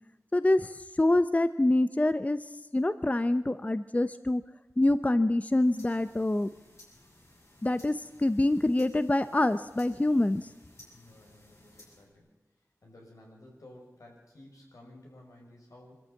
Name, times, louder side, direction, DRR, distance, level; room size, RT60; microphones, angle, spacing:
voice 1, 0.3-2.5 2.7-4.4 4.8-6.5 7.6-10.5, left 1 dB, 25° left, 13 dB, 0.7 m, -26 dB
sound 1, 5.4-12.1, left 1 dB, 60° left, 6.8 m, -58 dB
voice 2, 10.9-12.3 12.8-16.0, left 1 dB, 85° left, -1 dB, 6.2 m, -53 dB
24.0 x 13.5 x 8.4 m, 1.1 s
wide cardioid pair, 65°, 6 cm